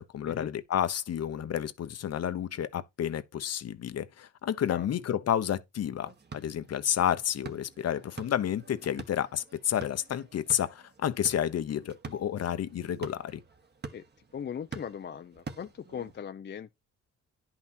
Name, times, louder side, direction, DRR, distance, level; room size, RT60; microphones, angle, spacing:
voice 1, 0.0-13.4, left 10 dB, 55° left, 1.0 m, -30 dB
sound 1, 6.0-16.2, right 4 dB, 35° right, 1.7 m, -47 dB
voice 2, 14.3-16.7, left 8 dB, 35° left, 0.7 m, -39 dB
10.5 x 5.9 x 4.4 m
cardioid pair, 90°, 30 cm